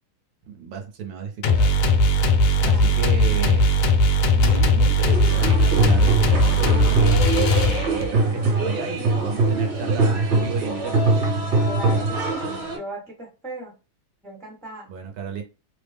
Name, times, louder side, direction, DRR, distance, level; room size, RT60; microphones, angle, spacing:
voice 1, 0.4-1.8 2.6-3.7 4.3-11.1 14.9-15.4, right 5 dB, 75° right, 3 dB, 1.4 m, -33 dB
sound 1, 1.4-8.2, left 1 dB, 75° left, 1.0 m, -18 dB
voice 2, 2.6-2.9 11.6-12.4 12.7-13.7 14.2-14.9, right 1 dB, 5° left, -2 dB, 0.4 m, -37 dB
sound 2, 5.1-12.8, right 3 dB, 60° right, 1.4 m, -23 dB
3.4 x 2.0 x 3.3 m, 0.31 s
omnidirectional pair, 2.3 m